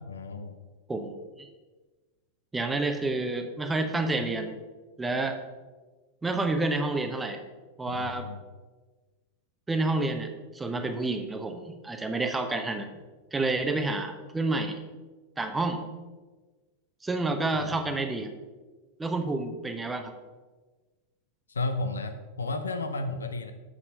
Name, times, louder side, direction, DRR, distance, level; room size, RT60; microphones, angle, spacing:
voice 1, 0.0-0.6 7.9-8.4 17.5-17.8 21.5-23.5, left 2 dB, 75° left, 8 dB, 0.7 m, -33 dB
voice 2, 0.9-1.5 2.5-4.5 5.0-5.4 6.2-7.4 7.8-8.3 9.7-12.9 13.3-14.8 15.4-15.8 17.0-18.3 19.0-20.1, right 2 dB, 10° right, 6 dB, 0.9 m, -29 dB
7.3 x 6.8 x 5.2 m, 1.3 s
figure-of-eight pair, 90°, 0 cm